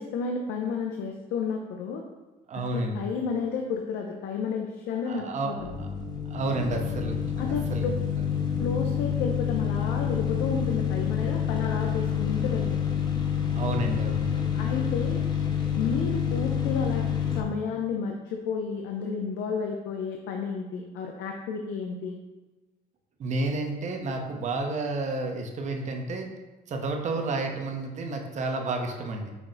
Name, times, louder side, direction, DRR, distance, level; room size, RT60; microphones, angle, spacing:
voice 1, 0.0-2.0 2.7-5.7 7.4-7.9 8.6-12.7 14.5-15.2 15.8-17.1 17.4-22.2, left 5 dB, 80° left, 2 dB, 0.5 m, -31 dB
voice 2, 2.5-3.1 5.0-5.9 6.3-7.9 8.2-8.3 13.6-14.5 23.2-26.3 26.7-29.3, right 2 dB, 45° right, 3 dB, 0.6 m, -31 dB
sound 1, 5.6-17.4, left 8 dB, 25° left, 0.6 m, -28 dB
5.7 x 2.0 x 3.9 m, 1.1 s
cardioid pair, 110°, 17 cm